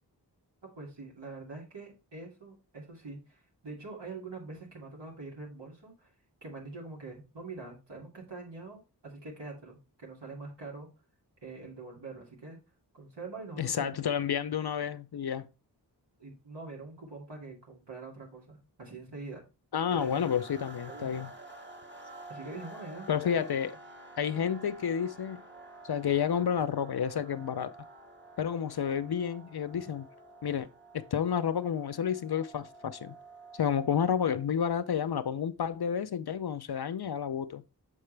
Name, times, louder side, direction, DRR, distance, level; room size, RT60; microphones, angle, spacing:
voice 1, 0.8-6.1 6.4-10.9 11.4-12.6 12.9-14.1 16.2-19.4 19.9-20.2 20.7-21.2 22.3-23.4 24.3-24.5, right 3 dB, 85° right, 2.5 m, -44 dB
voice 2, 13.6-15.5 19.7-21.3 23.1-23.7 24.2-25.4 25.9-27.7 28.4-30.1 30.4-30.7 30.9-33.2 33.6-37.6, left 8 dB, 65° left, 0.6 m, -30 dB
sound 1, 20.0-34.5, right 2 dB, 25° right, 1.2 m, -50 dB
7.3 x 4.8 x 3.3 m
wide cardioid pair, 55°, 41 cm